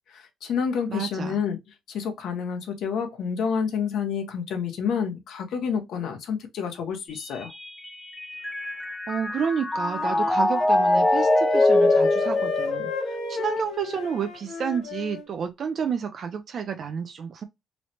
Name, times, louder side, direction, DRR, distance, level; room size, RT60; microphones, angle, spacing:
voice 1, 0.1-1.6 1.9-7.5, left 6 dB, 70° left, 0.8 m, -29 dB
voice 2, 0.9-1.4 9.1-17.4, right 7 dB, 50° right, 0.4 m, -30 dB
Mallet percussion, 7.1-13.6, left 1 dB, 10° left, 0.4 m, -24 dB
Wind instrument woodwind instrument, 9.7-15.2, left 6 dB, 90° left, 1.2 m, -32 dB
3.1 x 2.0 x 2.7 m
cardioid pair, 140°, 0 cm